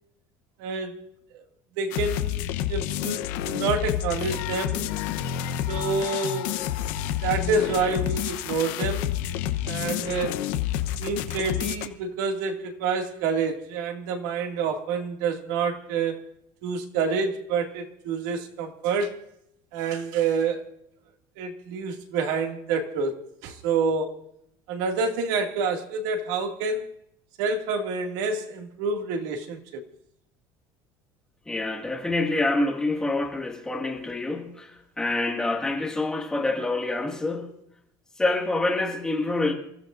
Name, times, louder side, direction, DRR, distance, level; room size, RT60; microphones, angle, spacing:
voice 1, 0.6-1.0 1.3-1.4 1.8-3.2 3.4-4.9 5.7-6.6 7.2-9.1 9.6-10.4 11.0-16.2 16.6-19.2 19.7-20.7 21.4-24.2 24.7-26.9 27.4-29.8, right 4 dB, 85° right, 2.2 m, -28 dB
sound 1, 1.9-11.9, left 11 dB, 85° left, 0.9 m, -29 dB
voice 2, 31.5-37.5 38.2-39.5, left 2 dB, 5° left, 1.9 m, -26 dB
28.5 x 15.0 x 2.6 m
cardioid pair, 180°, 10 cm